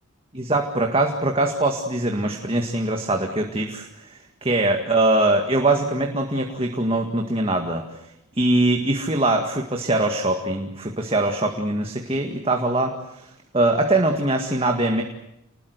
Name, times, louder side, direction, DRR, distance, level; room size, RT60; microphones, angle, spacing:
voice 1, 0.3-7.8 8.4-15.0, right 2 dB, 25° right, 3 dB, 2.0 m, -22 dB
29.0 x 21.0 x 8.1 m, 0.86 s
head